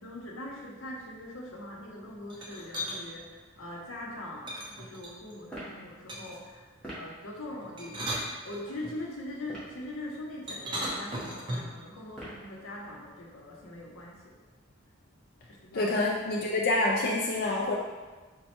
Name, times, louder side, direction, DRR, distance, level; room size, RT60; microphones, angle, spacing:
voice 1, 0.0-8.1 8.4-14.2 15.6-15.9, left 1 dB, 85° left, -2 dB, 0.8 m, -42 dB
sound 1, 2.3-3.0 4.5-5.4 6.1-6.5 7.6-9.0 10.5-11.8, equal, 25° right, 0.5 m, -36 dB
sound 2, 5.5-5.8 6.8-7.1 8.1-8.3 9.4-9.8 10.7-11.1 12.1-12.5, right 1 dB, 5° left, 1.0 m, -41 dB
voice 2, 15.7-17.8, left 2 dB, 45° left, -2 dB, 0.4 m, -27 dB
4.2 x 2.2 x 4.2 m, 1.3 s
head